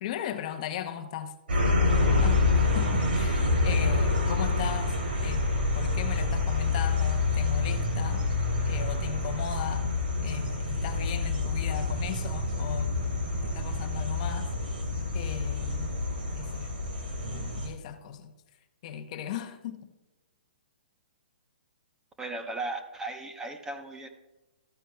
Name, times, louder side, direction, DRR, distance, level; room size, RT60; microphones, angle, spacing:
voice 1, 0.0-1.3 2.1-5.0 5.2-8.3 8.7-9.9 10.2-13.0 13.4-14.5 15.1-15.9 16.4-16.7 17.2-18.3 18.8-19.8, left 9 dB, 45° left, 0.8 m, -37 dB
sound 1, 1.5-17.7, left 3 dB, 75° right, 2.8 m, -27 dB
voice 2, 22.2-24.1, right 2 dB, 10° right, 0.8 m, -36 dB
13.5 x 9.2 x 2.3 m
hypercardioid pair, 140°, 5 cm